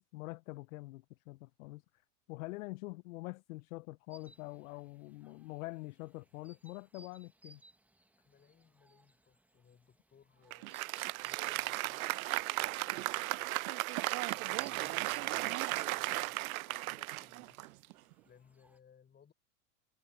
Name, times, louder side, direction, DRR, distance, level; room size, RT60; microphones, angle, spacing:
voice 1, 0.0-1.8 2.3-7.6, left 22 dB, 60° left, 0.7 m, -45 dB
sound 1, 4.1-18.8, right 2 dB, 5° right, 1.1 m, -65 dB
voice 2, 8.2-10.8 11.2-13.6 14.3-15.6 15.9-17.7 18.2-19.3, left 7 dB, 20° left, 4.7 m, -64 dB
Applause, 10.5-18.1, right 20 dB, 65° right, 0.6 m, -35 dB
hypercardioid pair, 110°, 45 cm